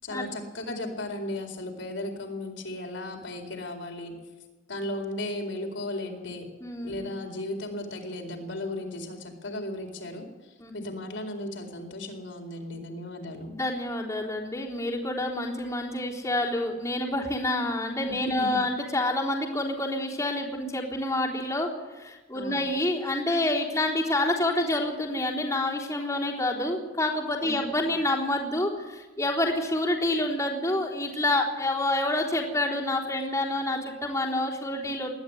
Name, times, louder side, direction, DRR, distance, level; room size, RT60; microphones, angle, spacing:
voice 1, 0.0-4.1 4.7-6.5 6.8-10.3 10.7-13.5 18.0-18.6 22.3-22.7 27.4-28.0, left 1 dB, 75° left, 2 dB, 4.3 m, -35 dB
voice 2, 6.6-7.1 10.6-10.7 13.5-21.7 22.0-35.1, left 1 dB, 15° left, -4 dB, 3.8 m, -28 dB
21.0 x 14.0 x 9.9 m, 1.2 s
head